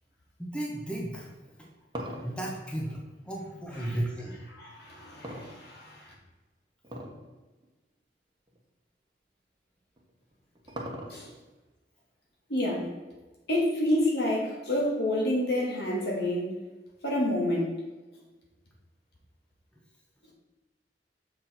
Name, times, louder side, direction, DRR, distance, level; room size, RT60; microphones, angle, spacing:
voice 1, 0.4-1.7 2.2-4.4, right 1 dB, 5° left, -2 dB, 1.4 m, -35 dB
sound 1, 1.4-3.9 5.2-6.1 6.8-7.3 7.6-7.7 8.5-8.6 10.0-11.5, equal, 25° right, 1.3 m, -40 dB
voice 2, 4.5-6.1 11.1-11.3 12.5-12.9 13.5-16.5 17.0-17.8, left 1 dB, 65° left, -2 dB, 2.4 m, -28 dB
7.4 x 5.8 x 4.5 m, 1.2 s
head